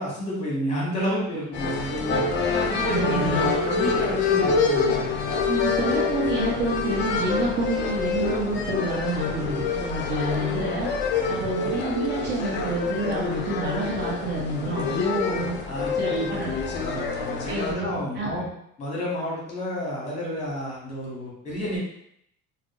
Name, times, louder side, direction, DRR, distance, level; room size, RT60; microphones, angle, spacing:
voice 1, 0.0-2.4 2.7-5.1 11.2-11.5 15.7-16.3 16.8-18.4 18.8-21.8, equal, 25° left, -5 dB, 1.2 m, -30 dB
sound 1, 1.5-17.7, left 5 dB, 40° left, 0.4 m, -26 dB
voice 2, 2.9-3.5 5.5-10.9 11.3-15.6 15.9-16.8 17.5-17.9 18.1-18.5, right 2 dB, 35° right, -5 dB, 1.0 m, -28 dB
2.5 x 2.2 x 3.8 m, 0.74 s
cardioid pair, 155°, 29 cm